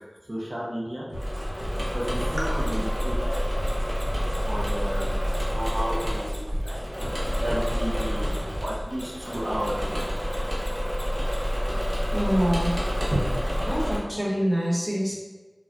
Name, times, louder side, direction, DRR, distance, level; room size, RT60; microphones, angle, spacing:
voice 1, 0.3-1.1 1.9-3.6 4.4-5.2 5.5-6.8 7.4-8.3 8.6-9.9, equal, 50° right, -6 dB, 0.6 m, -32 dB
Engine / Mechanisms, 1.1-14.0, equal, 25° right, 0.9 m, -28 dB
sound 1, 1.1-8.8, equal, 85° right, 1.2 m, -36 dB
Mechanisms, 2.6-9.4 9.6-11.4, left 1 dB, 45° left, 0.5 m, -46 dB
voice 2, 3.9-4.5 12.1-12.8 13.1-13.2 13.6-15.1, equal, ahead, -7 dB, 1.0 m, -26 dB
2.3 x 2.2 x 3.6 m, 1.2 s
wide cardioid pair, 50°, 0 cm